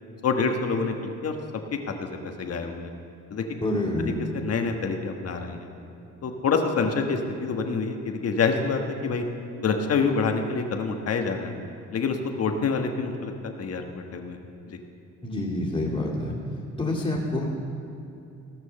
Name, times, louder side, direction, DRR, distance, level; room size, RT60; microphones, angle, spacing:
voice 1, 0.2-2.9 3.3-3.4 4.0-5.7 6.2-9.2 9.6-11.6 11.9-13.3 13.6-14.8, left 4 dB, 55° left, 4 dB, 1.3 m, -27 dB
voice 2, 3.6-4.1 15.2-16.3 16.8-17.5, left 2 dB, 20° left, -6 dB, 2.2 m, -27 dB
16.5 x 6.2 x 6.8 m, 2.9 s
cardioid pair, 90°, 30 cm